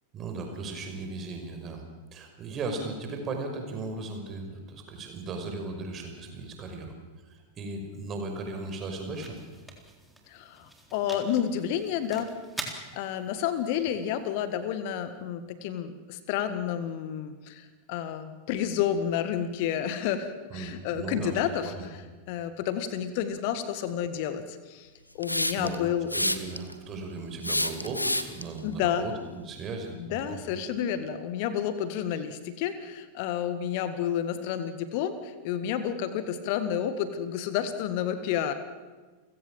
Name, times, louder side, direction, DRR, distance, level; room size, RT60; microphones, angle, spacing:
voice 1, 0.1-1.8 2.1-6.9 7.2-9.4 20.5-21.9 25.6-29.1 29.4-30.4, right 3 dB, 30° right, 4 dB, 5.5 m, -37 dB
sound 1, 7.6-15.7, right 1 dB, ahead, 3.9 m, -46 dB
voice 2, 10.3-12.3 12.6-24.9 25.1-26.1 28.6-29.0 30.0-38.5, left 9 dB, 45° left, 11 dB, 1.7 m, -30 dB
Hiss, 25.2-25.7 26.1-26.7 27.4-28.4, left 1 dB, 85° left, 1.2 m, -27 dB
30.0 x 16.5 x 7.5 m, 1.3 s
figure-of-eight pair, 90°, 0 cm